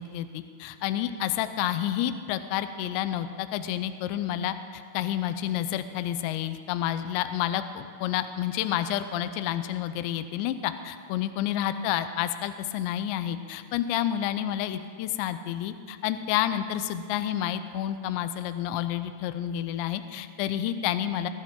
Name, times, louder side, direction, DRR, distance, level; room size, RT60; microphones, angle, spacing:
voice 1, 0.0-21.3, left 11 dB, 85° left, 11 dB, 2.5 m, -29 dB
20.0 x 14.5 x 3.7 m, 2.2 s
omnidirectional pair, 5.8 m